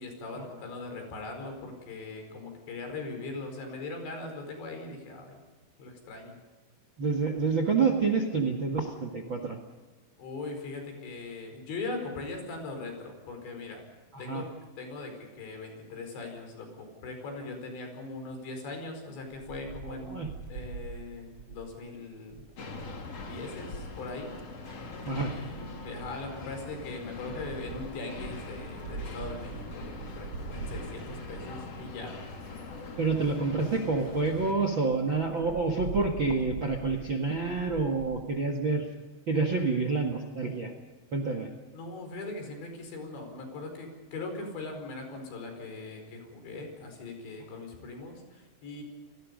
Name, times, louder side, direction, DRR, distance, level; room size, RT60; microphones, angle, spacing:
voice 1, 0.0-5.4 5.8-6.4 10.2-13.8 14.2-14.5 14.8-22.4 23.2-24.4 25.1-32.1 41.7-48.8, left 3 dB, 80° left, 4 dB, 7.1 m, -40 dB
voice 2, 7.0-9.6 14.1-14.4 19.8-20.3 25.0-25.3 33.0-38.9 39.3-40.7 41.1-41.5, right 4 dB, 50° right, 6 dB, 1.5 m, -28 dB
Wind, 19.3-23.0 24.1-24.5 25.2-32.2 32.8-32.9 33.1-33.2 33.6-33.7 34.0-34.1 34.3-34.4 34.9-38.2, right 5 dB, 80° right, 1.3 m, -43 dB
sound 1, 22.6-34.5, left 3 dB, 40° left, 3.4 m, -42 dB
30.0 x 20.0 x 5.4 m, 1.3 s
omnidirectional pair, 5.0 m